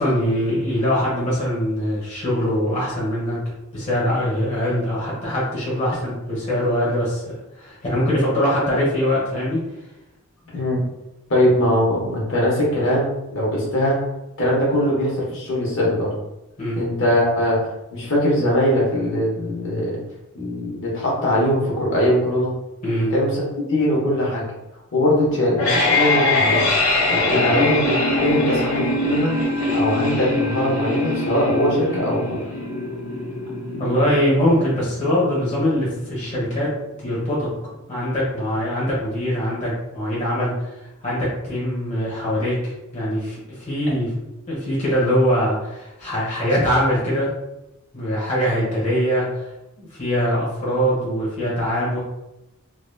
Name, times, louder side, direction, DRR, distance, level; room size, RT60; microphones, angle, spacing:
voice 1, 0.0-3.4 3.7-7.2 7.6-9.6 16.6-16.8 22.8-23.1 27.3-27.4 33.7-36.7 37.0-37.5 37.9-44.1 44.5-47.3 47.9-49.5 49.8-52.0, equal, 35° left, -6 dB, 1.0 m, -22 dB
voice 2, 11.3-14.0 14.4-16.1 16.8-20.0 20.3-22.5 23.1-23.4 23.7-24.4 24.9-26.6 27.1-29.3 29.7-32.4, equal, 60° left, -5 dB, 1.1 m, -21 dB
sound 1, 25.3-36.3, left 2 dB, 85° left, 1.0 m, -23 dB
3.2 x 2.9 x 2.2 m, 0.92 s
head